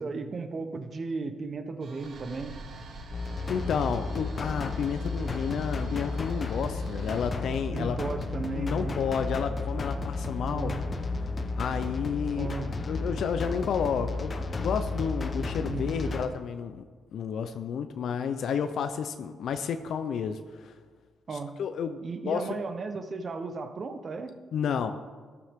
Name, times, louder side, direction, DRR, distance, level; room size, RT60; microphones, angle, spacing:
voice 1, 0.0-2.6 7.7-9.0 10.4-10.8 12.4-12.7 15.6-16.3 21.3-21.5 22.0-24.4, right 4 dB, 40° right, 8 dB, 1.1 m, -35 dB
sound 1, 1.8-7.3, right 2 dB, 60° right, 1.7 m, -46 dB
sound 2, 3.1-16.3, left 3 dB, 35° left, 1.1 m, -33 dB
voice 2, 3.5-8.0 8.5-10.7 11.6-16.8 17.1-20.7 21.3-22.5 24.5-24.9, left 7 dB, 65° left, 8 dB, 0.6 m, -31 dB
14.5 x 10.5 x 3.7 m, 1.5 s
cardioid pair, 90°, 0 cm